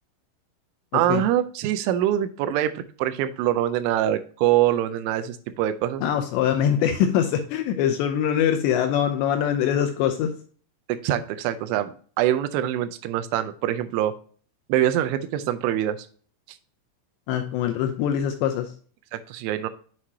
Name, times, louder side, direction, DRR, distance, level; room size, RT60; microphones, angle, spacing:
voice 1, 0.9-6.0 10.9-14.1 14.7-16.1 19.1-19.7, right 12 dB, 85° right, 10 dB, 2.9 m, -24 dB
voice 2, 6.0-10.3 17.3-18.7, left 9 dB, 80° left, 6 dB, 2.6 m, -23 dB
7.4 x 6.3 x 2.7 m, 0.44 s
omnidirectional pair, 5.6 m